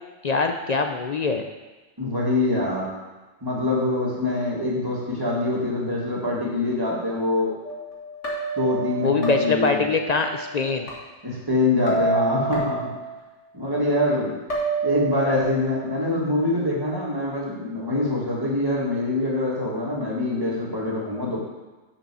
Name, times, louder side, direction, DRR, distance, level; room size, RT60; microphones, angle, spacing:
voice 1, 0.2-1.5 9.0-10.9, left 4 dB, 50° left, 5 dB, 0.5 m, -23 dB
voice 2, 2.0-2.9 3.4-7.5 8.6-9.9 11.2-12.9 13.5-14.3 14.8-21.4, left 2 dB, 20° right, -5 dB, 2.1 m, -24 dB
sound 1, 7.6-10.9 11.9-13.1 14.5-15.4, right 3 dB, 85° left, 2.2 m, -28 dB
6.7 x 6.0 x 6.2 m, 1.2 s
omnidirectional pair, 1.2 m